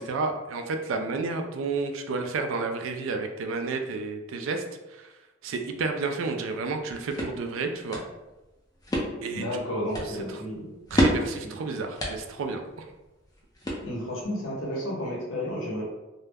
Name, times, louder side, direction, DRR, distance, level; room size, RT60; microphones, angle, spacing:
voice 1, 0.0-4.6 4.9-5.1 5.4-8.0 9.2-9.6 10.9-12.9, right 4 dB, 75° right, 5 dB, 0.3 m, -31 dB
sound 1, 6.7-14.3, equal, 20° left, 0.4 m, -32 dB
voice 2, 9.3-10.7 11.4-11.7 13.8-15.8, left 1 dB, 80° left, -3 dB, 0.9 m, -32 dB
2.2 x 2.0 x 3.3 m, 1.0 s
head